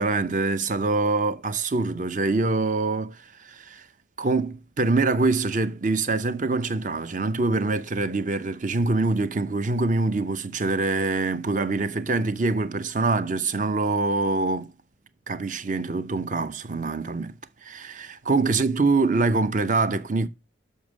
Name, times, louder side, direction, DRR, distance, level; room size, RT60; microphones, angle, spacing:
voice 1, 0.0-3.9 4.2-14.8 15.3-20.3, right 3 dB, 40° right, 0.7 m, -25 dB
6.9 x 6.2 x 6.2 m
head